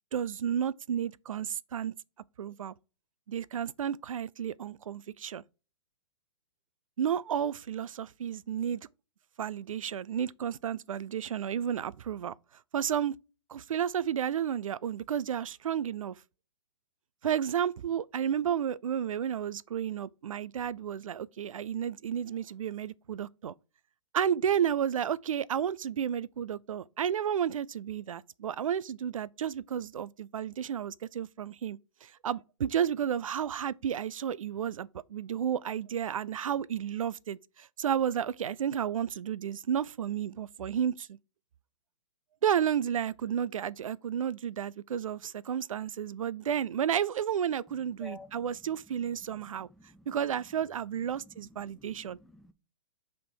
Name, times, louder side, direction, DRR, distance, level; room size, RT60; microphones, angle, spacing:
voice 1, 0.1-1.9 2.4-2.7 3.3-5.4 7.0-8.8 9.4-12.3 12.7-13.1 13.5-16.2 17.2-23.5 24.1-41.2 42.4-49.7 50.1-52.2, right 9 dB, 85° right, 0.4 m, -32 dB
voice 2, 48.0-48.4 49.3-50.1 51.2-52.5, left 2 dB, ahead, 0.3 m, -51 dB
5.9 x 3.5 x 4.7 m
hypercardioid pair, 140°, 17 cm